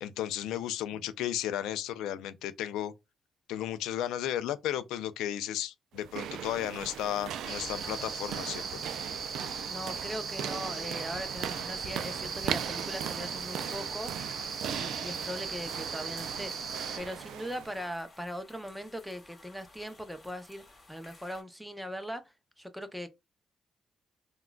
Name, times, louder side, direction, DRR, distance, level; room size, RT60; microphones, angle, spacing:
voice 1, 0.0-2.9 3.5-8.8, left 11 dB, 90° left, 0.3 m, -34 dB
sound 1, 5.9-17.9, right 9 dB, 80° right, 0.3 m, -38 dB
sound 2, 7.5-17.0, right 5 dB, 50° right, 0.7 m, -39 dB
voice 2, 9.7-14.1 14.7-16.5 17.0-23.1, equal, ahead, 0.6 m, -40 dB
sound 3, 14.0-21.4, left 2 dB, 30° left, 1.9 m, -57 dB
3.6 x 2.2 x 2.2 m
cardioid pair, 90°, 0 cm